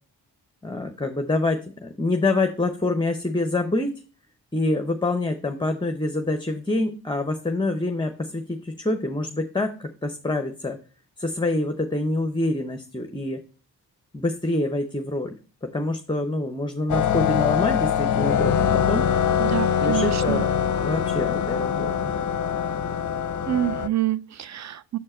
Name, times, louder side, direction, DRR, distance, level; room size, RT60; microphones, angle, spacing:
voice 1, 0.6-3.9 4.5-10.8 11.2-13.4 14.1-15.3 15.6-18.6 18.9-19.1 19.8-20.5 20.8-22.1, left 2 dB, 10° left, 0.7 m, -26 dB
sound 1, 16.9-23.9, left 8 dB, 45° left, 0.6 m, -23 dB
voice 2, 19.4-20.5 23.5-25.0, right 13 dB, 40° right, 0.4 m, -27 dB
7.2 x 4.4 x 4.3 m
supercardioid pair, 45°, 42 cm